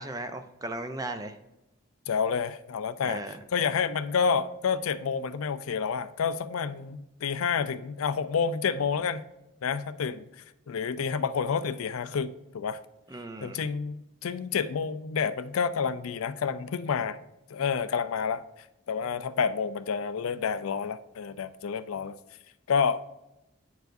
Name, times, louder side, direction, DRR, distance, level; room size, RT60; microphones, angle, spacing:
voice 1, 0.0-1.4 3.0-3.4 13.1-13.6, right 2 dB, 15° right, 8 dB, 0.5 m, -36 dB
voice 2, 2.1-9.2 9.6-10.2 10.7-12.8 13.4-17.2 17.5-18.4 18.9-22.2 22.7-23.1, left 6 dB, 90° left, 13 dB, 0.4 m, -29 dB
9.0 x 4.7 x 2.6 m, 0.93 s
head